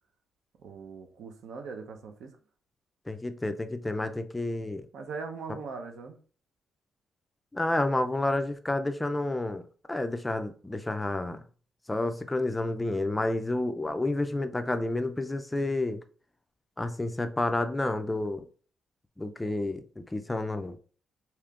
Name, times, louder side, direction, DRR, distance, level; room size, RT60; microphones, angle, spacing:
voice 1, 0.6-2.3 4.9-6.2, right 4 dB, 75° right, 0.6 m, -40 dB
voice 2, 3.1-4.8 7.5-9.6 9.9-11.4 11.9-16.0 16.8-18.4 19.2-20.8, left 2 dB, 10° left, 0.3 m, -30 dB
5.0 x 2.9 x 2.4 m
cardioid pair, 115°, 0 cm